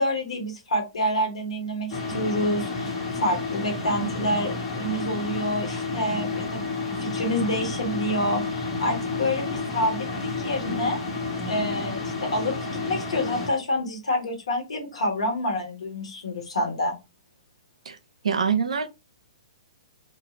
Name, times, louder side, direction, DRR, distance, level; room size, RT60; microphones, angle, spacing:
voice 1, 0.0-11.0 11.5-12.5 12.9-16.9, left 1 dB, 75° left, 1.2 m, -28 dB
sound 1, 1.9-13.5, left 3 dB, 40° left, 1.2 m, -30 dB
voice 2, 18.2-18.9, right 6 dB, 75° right, 0.5 m, -24 dB
2.4 x 2.4 x 3.0 m
hypercardioid pair, 125°, 3 cm